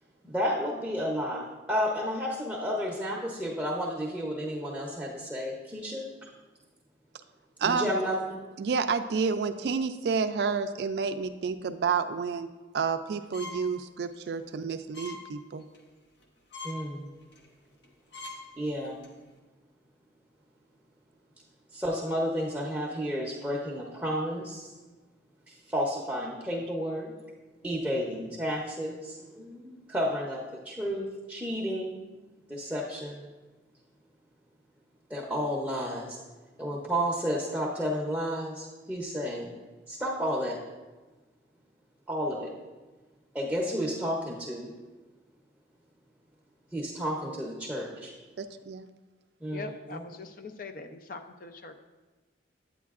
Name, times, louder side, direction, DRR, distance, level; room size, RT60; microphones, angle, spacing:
voice 1, 0.2-6.3 7.6-8.5 16.6-17.1 18.6-19.0 21.7-24.7 25.5-27.1 27.6-32.0 32.5-33.2 35.1-36.2 36.6-39.5 39.9-40.6 42.1-42.5 43.3-44.7 46.7-48.1 49.4-50.0, equal, 5° right, -3 dB, 0.7 m, -32 dB
voice 2, 7.6-7.9 8.6-12.5 12.7-15.6 48.4-48.9, right 5 dB, 60° right, 9 dB, 0.3 m, -30 dB
sound 1, 13.3-13.7 14.1-14.3 14.9-15.2 15.6-15.8 16.2-16.3 16.5-16.8 17.3-17.5 17.8-17.9 18.1-18.4 18.8-19.1, left 3 dB, 75° left, 0.9 m, -42 dB
voice 3, 49.5-51.7, left 3 dB, 50° left, 7 dB, 0.5 m, -42 dB
9.3 x 8.3 x 2.4 m, 1.2 s
head